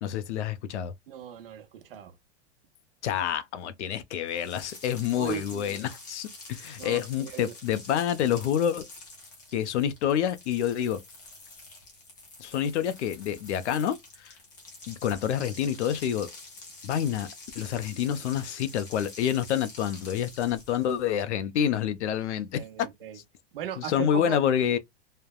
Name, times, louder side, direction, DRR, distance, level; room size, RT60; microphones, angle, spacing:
voice 1, 0.0-0.9 3.0-8.9 9.5-11.0 12.4-14.0 14.2-14.3 14.9-16.3 16.8-17.3 17.6-22.6 23.8-24.8, left 9 dB, 90° left, 0.6 m, -28 dB
voice 2, 1.1-2.1 5.2-5.9 6.8-7.5 22.5-23.2 23.5-24.4, right 10 dB, 55° right, 0.8 m, -38 dB
sound 1, 4.3-21.1, left 3 dB, 20° left, 0.4 m, -47 dB
3.2 x 2.1 x 2.2 m
supercardioid pair, 175°, 34 cm